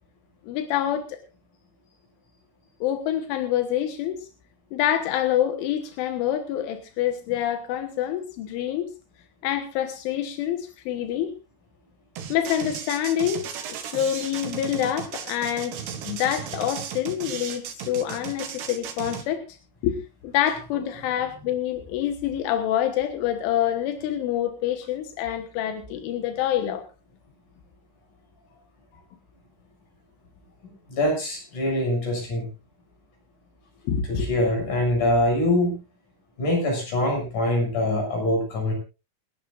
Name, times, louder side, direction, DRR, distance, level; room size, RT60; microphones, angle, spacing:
voice 1, 0.5-1.1 2.8-4.2 4.7-8.9 9.4-11.3 12.3-13.5 13.9-19.4 19.8-20.0 20.2-26.8 33.9-34.3, left 11 dB, 85° left, 6 dB, 3.8 m, -26 dB
sound 1, 12.2-19.2, right 8 dB, 65° right, 3.6 m, -35 dB
voice 2, 30.9-32.5 34.1-35.8 36.4-38.7, left 1 dB, 40° left, 1 dB, 8.2 m, -24 dB
29.0 x 11.0 x 2.5 m, 0.30 s
omnidirectional pair, 5.4 m